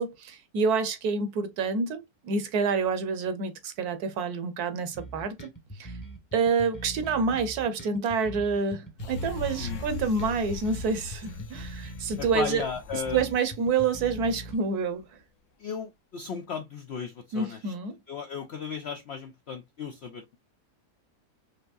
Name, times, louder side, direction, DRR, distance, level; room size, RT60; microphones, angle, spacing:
voice 1, 0.0-5.5 5.8-5.9 6.3-12.6 13.1-15.1 17.3-18.0, right 4 dB, 70° right, 1.3 m, -28 dB
sound 1, 4.9-14.5, right 1 dB, 15° left, 0.7 m, -42 dB
sound 2, 9.0-14.6 15.0-15.1, left 4 dB, 60° left, 0.9 m, -40 dB
voice 2, 9.6-9.9 12.2-13.3 15.6-17.7 18.1-20.4, left 6 dB, 75° left, 0.6 m, -35 dB
5.2 x 2.8 x 2.3 m
omnidirectional pair, 1.8 m